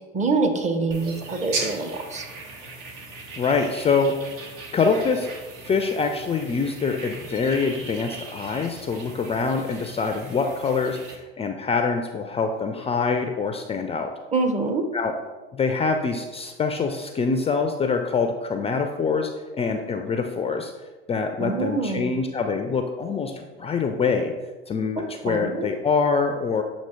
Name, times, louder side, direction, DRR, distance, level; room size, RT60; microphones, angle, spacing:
voice 1, 0.1-2.3 14.3-14.8 21.4-22.1 25.0-25.7, right 3 dB, 25° right, 6 dB, 0.8 m, -25 dB
sound 1, 0.9-11.2, right 3 dB, 65° right, 1.2 m, -38 dB
voice 2, 3.4-4.2 4.5-5.3 5.6-14.1 14.9-15.1 15.5-20.7 21.1-24.3 24.7-26.6, left 4 dB, 20° left, 5 dB, 0.4 m, -25 dB
7.4 x 2.9 x 4.3 m, 1.3 s
hypercardioid pair, 75°, 30 cm